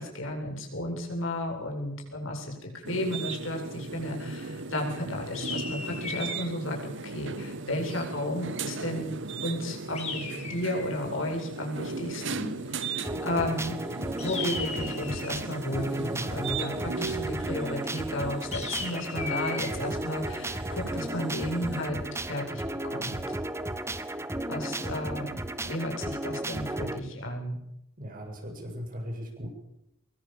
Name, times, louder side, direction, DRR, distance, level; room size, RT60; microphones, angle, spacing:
voice 1, 0.0-13.8 14.2-23.3 24.5-25.3 25.6-27.6, left 1 dB, 70° left, 1 dB, 7.9 m, -33 dB
sound 1, 2.8-21.9, right 4 dB, 65° right, 1.6 m, -38 dB
sound 2, 5.3-6.5 9.9-11.0 14.2-15.4 18.5-19.7, left 5 dB, 35° left, 5.7 m, -36 dB
sound 3, 13.0-27.0, right 1 dB, 15° right, 1.5 m, -34 dB
voice 2, 28.0-29.5, equal, 45° right, 3 dB, 7.2 m, -38 dB
25.5 x 23.5 x 7.5 m, 0.82 s
head